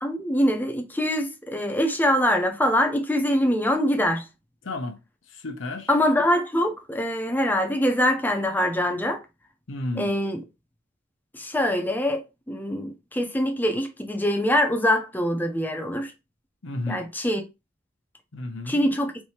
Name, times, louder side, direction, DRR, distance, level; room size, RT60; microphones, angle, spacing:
voice 1, 0.0-4.3 5.9-9.2 10.0-10.4 11.3-12.2 12.5-16.1 16.9-17.4 18.7-19.1, equal, 10° left, 0.6 m, -24 dB
voice 2, 4.6-5.0 5.3-5.9 9.7-10.2 16.6-17.1 18.3-18.8, left 2 dB, 70° left, 0.8 m, -32 dB
4.6 x 2.7 x 2.8 m
head